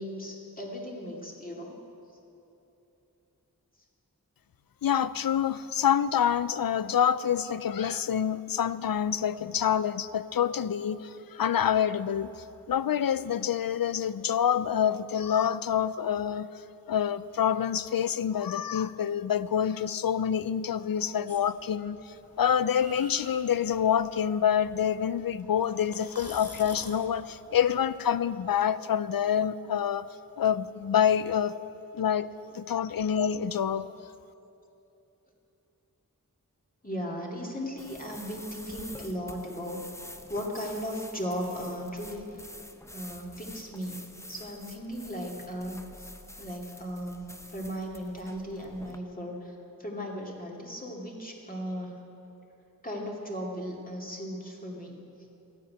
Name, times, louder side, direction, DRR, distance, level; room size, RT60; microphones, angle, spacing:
voice 1, 0.0-1.7 36.8-39.8 40.3-42.2 42.9-44.0 44.3-46.1 46.4-47.2 47.5-49.5 49.8-52.0 52.8-54.9, equal, 25° left, -2 dB, 2.5 m, -36 dB
voice 2, 4.8-11.0 11.3-12.3 12.7-16.5 16.9-22.0 22.4-30.1 30.4-31.6 31.9-32.3 32.5-33.9, left 8 dB, 80° left, 15 dB, 0.5 m, -27 dB
sound 1, 21.3-28.0, left 2 dB, 45° left, 1.7 m, -49 dB
sound 2, 37.8-49.0, left 1 dB, 10° left, 0.8 m, -48 dB
14.0 x 9.6 x 8.8 m, 2.9 s
wide cardioid pair, 65°, 34 cm